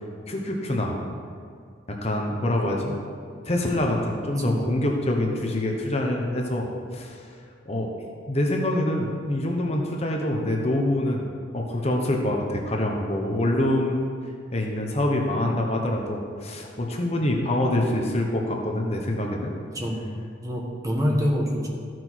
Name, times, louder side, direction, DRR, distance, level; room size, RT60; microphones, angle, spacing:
voice 1, 0.3-1.0 1.9-3.0 3.4-6.7 6.9-7.3 7.7-7.9 8.3-11.2 11.5-14.0 14.5-19.5 21.1-21.2, left 1 dB, 35° left, 1 dB, 1.0 m, -25 dB
voice 2, 19.6-21.7, equal, 20° right, -1 dB, 1.2 m, -27 dB
13.5 x 6.1 x 4.6 m, 2.2 s
head